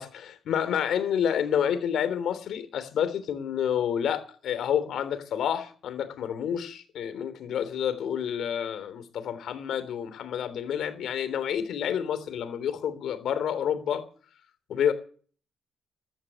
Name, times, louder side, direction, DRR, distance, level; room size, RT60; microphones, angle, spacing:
voice 1, 0.0-14.0 14.7-14.9, left 9 dB, 70° left, 3.3 m, -29 dB
14.0 x 12.0 x 8.2 m
cardioid pair, 90°, 0 cm